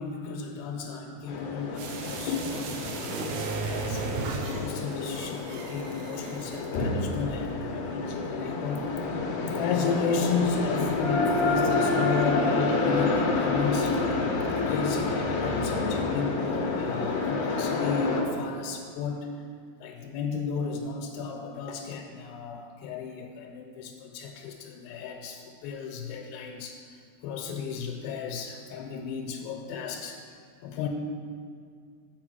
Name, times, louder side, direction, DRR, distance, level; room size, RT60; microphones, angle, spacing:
voice 1, 0.0-4.1 4.5-8.9 9.5-14.0 14.6-19.3 19.8-26.8 27.2-30.2 30.6-30.9, left 5 dB, 85° left, 1 dB, 2.5 m, -34 dB
sound 1, 1.3-18.2, left 3 dB, 70° left, 2.2 m, -28 dB
sound 2, 1.8-6.8 7.1-7.2, right 4 dB, 85° right, 1.6 m, -35 dB
8.4 x 4.4 x 6.1 m, 2.2 s
omnidirectional pair, 4.1 m